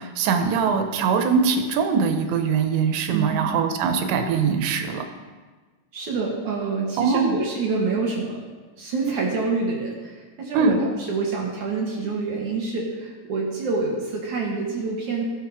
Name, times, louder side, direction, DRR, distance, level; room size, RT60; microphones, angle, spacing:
voice 1, 0.0-5.0 7.0-7.3 10.5-10.8, right 5 dB, 90° right, 6 dB, 3.3 m, -22 dB
voice 2, 3.1-3.5 5.9-8.4 8.8-15.2, right 4 dB, 55° right, -2 dB, 2.4 m, -27 dB
18.5 x 6.7 x 5.0 m, 1.4 s
omnidirectional pair, 4.9 m